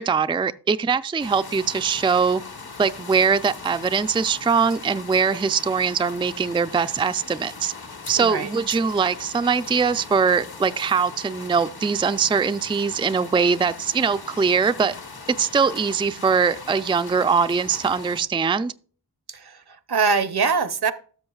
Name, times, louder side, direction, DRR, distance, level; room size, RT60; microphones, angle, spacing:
voice 1, 0.0-2.4 2.8-7.7 8.1-14.9 15.4-18.7, right 5 dB, 15° right, 0.3 m, -22 dB
sound 1, 1.2-18.2, left 4 dB, 65° left, 1.3 m, -40 dB
voice 2, 8.2-8.5 19.3-20.9, right 5 dB, 70° right, 0.8 m, -23 dB
13.0 x 6.3 x 2.3 m
wide cardioid pair, 50°, 40 cm